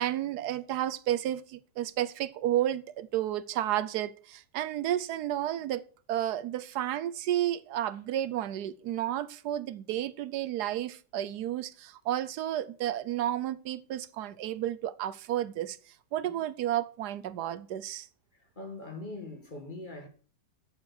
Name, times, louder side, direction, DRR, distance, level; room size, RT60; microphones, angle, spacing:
voice 1, 0.0-5.8 6.1-15.8 16.1-18.1, right 12 dB, 75° right, 1.1 m, -32 dB
voice 2, 18.3-20.1, left 2 dB, 30° left, 2.1 m, -42 dB
7.9 x 6.9 x 6.5 m
omnidirectional pair, 1.8 m